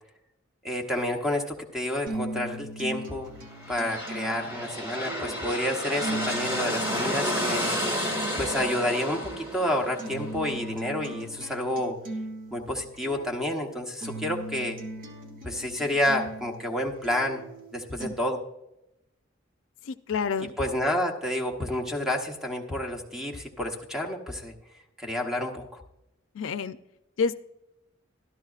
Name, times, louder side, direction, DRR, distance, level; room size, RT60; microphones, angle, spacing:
voice 1, 0.6-3.3 3.7-7.7 8.4-12.0 12.5-14.8 15.4-17.4 17.7-18.4 20.6-24.5 25.0-25.8, left 1 dB, ahead, 2 dB, 0.9 m, -29 dB
sound 1, 2.1-18.1, right 2 dB, 45° right, 1.1 m, -39 dB
sound 2, 3.5-11.2, equal, 25° right, 1.7 m, -31 dB
voice 2, 19.9-20.5 26.3-26.8 27.2-27.4, left 5 dB, 75° left, 11 dB, 0.4 m, -28 dB
12.5 x 12.5 x 2.4 m, 0.87 s
head